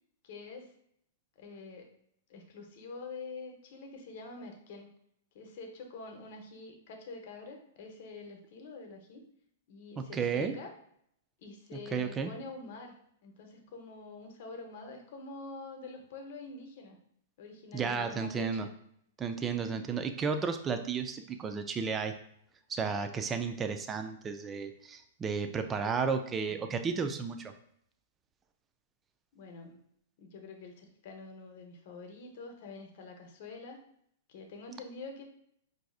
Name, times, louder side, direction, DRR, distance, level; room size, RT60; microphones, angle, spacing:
voice 1, 0.2-0.7 1.4-1.9 2.3-4.9 5.3-9.2 9.7-10.7 11.4-17.0 17.4-18.7 19.5-19.9 26.6-26.8 29.3-29.8 30.2-33.8 34.3-35.2, left 3 dB, 55° left, 3 dB, 0.8 m, -46 dB
voice 2, 10.0-10.5 11.7-12.3 17.7-18.7 19.2-22.1 22.7-27.5, right 5 dB, 20° right, 7 dB, 0.4 m, -33 dB
4.6 x 2.6 x 2.3 m, 0.70 s
hypercardioid pair, 135°, 0 cm